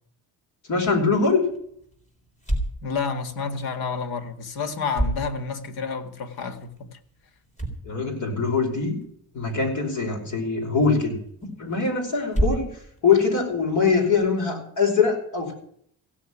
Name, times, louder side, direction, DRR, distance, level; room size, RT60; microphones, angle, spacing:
voice 1, 0.7-1.4 7.9-9.0 9.3-11.2 11.6-12.7 13.0-15.5, left 4 dB, 55° left, 5.3 m, -22 dB
sound 1, 0.7-14.3, right 1 dB, 20° left, 3.9 m, -34 dB
voice 2, 2.8-7.0, left 5 dB, 80° left, 1.9 m, -30 dB
16.0 x 7.0 x 9.9 m
cardioid pair, 140°, 36 cm